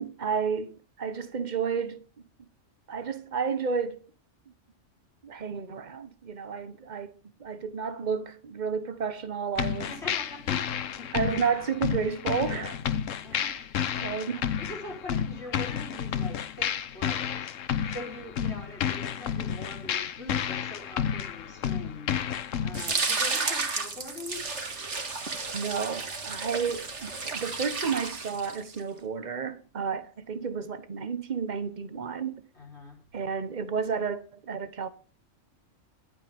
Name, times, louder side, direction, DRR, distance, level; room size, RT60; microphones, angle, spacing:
voice 1, 0.0-2.1 2.9-4.0 5.2-7.1 7.4-10.0 11.1-12.8 13.3-13.5 14.0-14.5 25.5-32.4 33.1-34.9, right 6 dB, 40° right, 1.2 m, -31 dB
sound 1, 9.6-22.9, left 8 dB, 85° left, 1.2 m, -31 dB
voice 2, 9.9-11.3 13.2-13.6 14.6-17.5 17.9-22.2 22.6-24.4 32.5-33.0, left 2 dB, 60° left, 4.1 m, -43 dB
sound 2, 22.7-28.8, right 4 dB, 65° right, 2.1 m, -32 dB
23.5 x 8.5 x 3.6 m
omnidirectional pair, 1.3 m